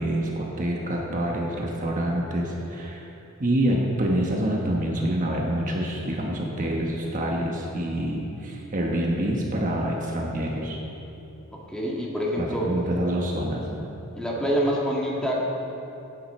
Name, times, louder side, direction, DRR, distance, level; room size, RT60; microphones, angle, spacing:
voice 1, 0.0-3.0 3.4-10.8 12.4-13.7, right 1 dB, 35° right, -1 dB, 1.2 m, -26 dB
voice 2, 11.7-12.7 14.1-15.3, equal, 5° left, -4 dB, 1.7 m, -26 dB
15.5 x 9.2 x 4.4 m, 3.0 s
head